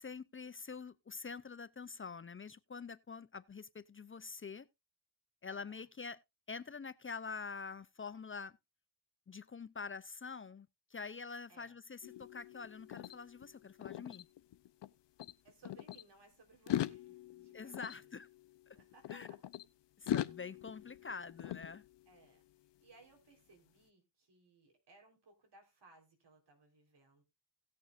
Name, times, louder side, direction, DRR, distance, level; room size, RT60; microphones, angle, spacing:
voice 1, 0.0-4.7 5.4-6.2 6.5-8.6 9.3-14.3 17.5-18.3 19.1-19.3 20.0-21.9, left 5 dB, 30° left, 0.5 m, -46 dB
voice 2, 5.5-5.8 11.5-11.7 15.4-18.1 18.7-19.4 22.1-22.4 22.8-27.2, right 3 dB, 70° right, 4.1 m, -64 dB
sound 1, 12.0-14.9 15.2-16.0 16.5-19.6 20.1-22.3, left 12 dB, 75° left, 0.6 m, -42 dB
17.5 x 6.8 x 2.5 m
cardioid pair, 65°, 43 cm